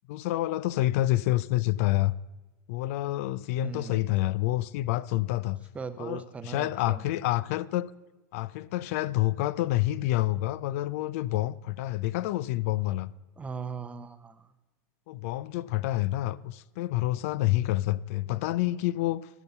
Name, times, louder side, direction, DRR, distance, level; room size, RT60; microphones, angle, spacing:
voice 1, 0.1-2.1 2.7-5.6 6.0-7.9 8.3-13.1 15.1-19.3, left 16 dB, 60° left, 0.4 m, -28 dB
voice 2, 3.5-4.1 5.7-7.0 13.4-14.5, right 5 dB, 15° right, 0.6 m, -39 dB
14.0 x 5.6 x 6.6 m
supercardioid pair, 130°, 8 cm